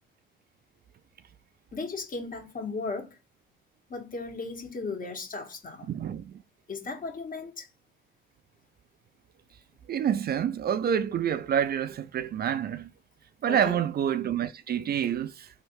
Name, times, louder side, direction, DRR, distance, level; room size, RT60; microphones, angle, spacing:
voice 1, 1.7-3.2 3.9-5.9 6.7-7.7 13.5-13.8, left 3 dB, 45° left, 1.6 m, -36 dB
voice 2, 5.9-6.3 9.9-12.9 13.4-15.5, right 9 dB, 50° right, 0.5 m, -27 dB
3.2 x 2.7 x 4.6 m
cardioid pair, 90°, 20 cm